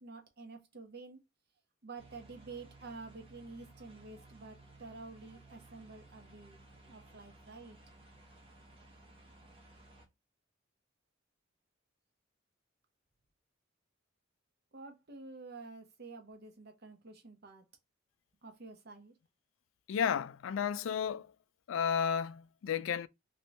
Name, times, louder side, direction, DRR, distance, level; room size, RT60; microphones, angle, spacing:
voice 1, 0.0-1.2 1.8-6.6 6.9-7.8 14.7-17.7 18.4-19.1, right 3 dB, 55° right, 0.9 m, -49 dB
sound 1, 2.0-10.1, right 2 dB, 30° right, 1.0 m, -58 dB
voice 2, 19.9-21.3 21.7-23.1, left 7 dB, 85° left, 0.3 m, -32 dB
2.9 x 2.7 x 3.1 m
head